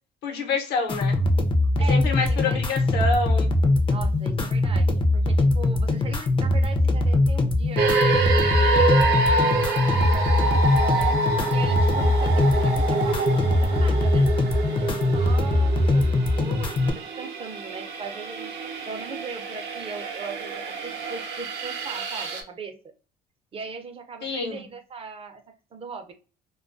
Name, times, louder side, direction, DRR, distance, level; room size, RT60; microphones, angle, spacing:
voice 1, 0.2-1.2 1.9-3.5 24.2-24.7, left 4 dB, 75° left, 3 dB, 0.8 m, -27 dB
sound 1, 0.9-16.9, left 2 dB, 30° left, 0.4 m, -22 dB
voice 2, 1.8-2.8 3.9-7.9 8.6-14.3 14.8-18.6 18.9-22.8 23.5-25.4 25.7-26.1, right 4 dB, 35° right, 6 dB, 0.5 m, -39 dB
sound 2, 7.8-22.4, right 3 dB, 75° right, 0.6 m, -26 dB
2.2 x 2.2 x 2.4 m, 0.36 s
cardioid pair, 110°, 17 cm